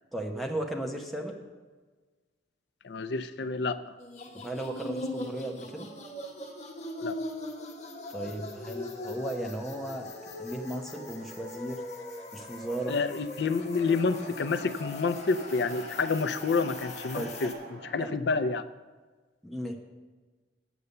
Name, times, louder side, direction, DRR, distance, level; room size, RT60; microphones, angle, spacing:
voice 1, 0.1-1.4 4.3-5.9 8.1-10.1 10.4-11.8 12.3-12.9 17.1-17.3 18.0-18.1 19.4-19.8, right 1 dB, ahead, 0 dB, 0.8 m, -35 dB
voice 2, 2.8-3.8 7.0-7.2 12.9-17.5 17.9-18.6, left 4 dB, 70° left, 12 dB, 0.4 m, -28 dB
sound 1, 4.0-17.5, left 2 dB, 40° left, 1.1 m, -40 dB
Wind, 13.4-17.9, right 2 dB, 70° right, 1.3 m, -46 dB
8.2 x 6.9 x 6.6 m, 1.4 s
head